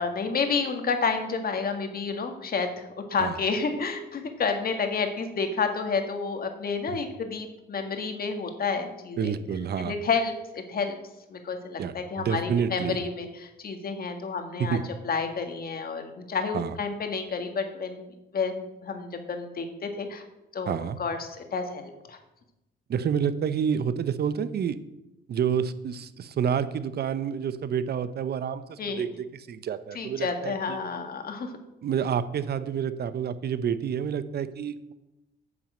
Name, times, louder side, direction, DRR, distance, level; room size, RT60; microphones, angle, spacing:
voice 1, 0.0-9.3 9.8-11.0 11.3-14.8 15.0-18.5 18.8-20.2 20.5-22.2 28.8-29.0 29.9-31.5, left 5 dB, 50° left, 5 dB, 1.8 m, -30 dB
voice 2, 9.2-9.9 11.8-13.0 14.6-14.8 16.5-16.7 20.7-21.0 22.9-24.8 25.3-30.8 31.8-34.9, right 7 dB, 55° right, 14 dB, 0.8 m, -29 dB
9.4 x 6.0 x 7.7 m, 0.93 s
cardioid pair, 90°, 20 cm